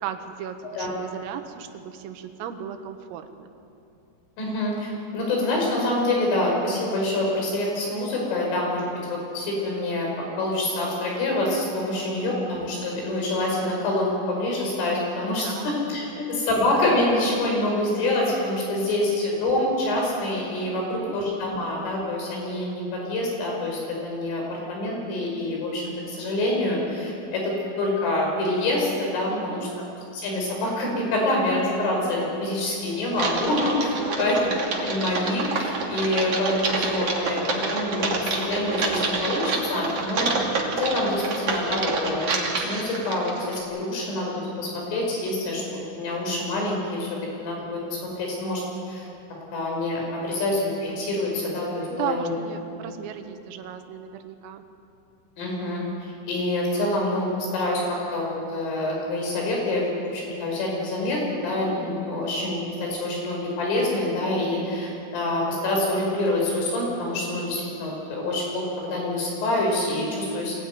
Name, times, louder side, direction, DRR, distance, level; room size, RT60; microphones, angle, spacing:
voice 1, 0.0-3.5 11.9-12.4 15.0-15.8 16.2-16.3 18.6-19.1 20.8-21.1 29.3-29.7 34.0-34.2 51.9-54.6 70.1-70.5, right 9 dB, 90° right, 7 dB, 4.0 m, -36 dB
voice 2, 4.4-8.8 9.1-29.7 30.1-33.9 34.2-34.5 34.8-42.4 42.6-47.1 47.4-48.6 48.9-49.1 49.5-52.3 55.4-70.5, left 1 dB, 75° left, -2 dB, 8.1 m, -26 dB
Typing, 33.1-43.6, right 3 dB, 40° right, 2.8 m, -27 dB
24.0 x 17.5 x 9.4 m, 2.7 s
omnidirectional pair, 5.8 m